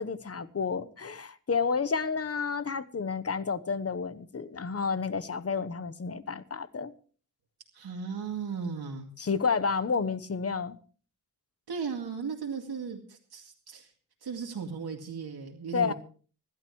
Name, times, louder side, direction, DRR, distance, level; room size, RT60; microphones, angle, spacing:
voice 1, 0.0-6.9 9.2-10.8 15.7-15.9, left 5 dB, 35° left, 1.0 m, -30 dB
voice 2, 7.7-9.1 11.7-13.9 14.2-15.9, right 5 dB, 70° right, 2.3 m, -36 dB
25.0 x 12.0 x 3.2 m
wide cardioid pair, 160°, 39 cm